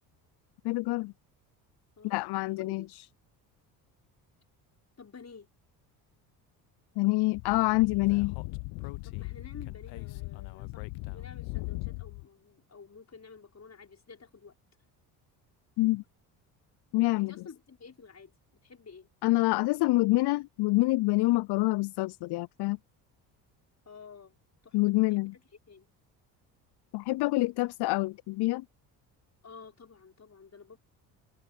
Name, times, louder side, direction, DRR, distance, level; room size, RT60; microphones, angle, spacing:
voice 1, 0.6-1.1 2.0-3.0 7.0-8.4 15.8-16.0 16.9-17.3 19.2-22.8 24.7-25.3 26.9-28.6, left 20 dB, 55° left, 0.6 m, -26 dB
voice 2, 2.6-2.9 5.0-5.5 9.0-10.9 11.1-14.5 17.2-18.3 18.6-19.1 23.9-24.4 24.6-25.3 25.7-25.9 29.4-30.8, left 5 dB, 35° left, 5.9 m, -51 dB
Speech / Wind, 7.3-12.2, left 27 dB, 70° left, 0.9 m, -39 dB
open air
hypercardioid pair, 60°, 48 cm